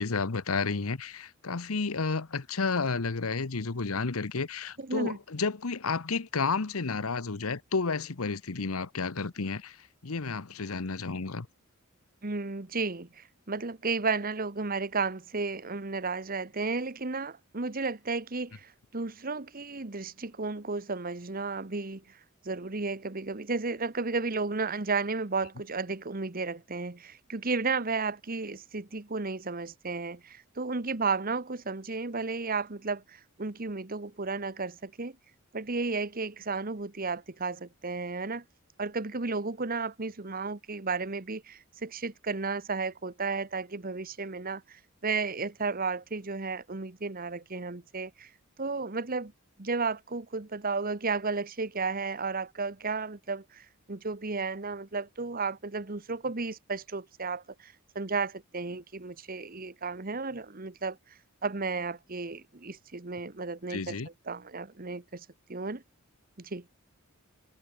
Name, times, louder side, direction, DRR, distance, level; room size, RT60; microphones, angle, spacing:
voice 1, 0.0-11.5 63.7-64.1, left 4 dB, 85° left, 1.0 m, -31 dB
voice 2, 4.8-5.2 12.2-22.0 22.4-35.2 35.5-38.4 38.8-48.3 48.6-49.3 49.6-61.0 61.4-64.0 64.3-65.8 66.4-66.6, right 4 dB, 40° right, 1.3 m, -33 dB
head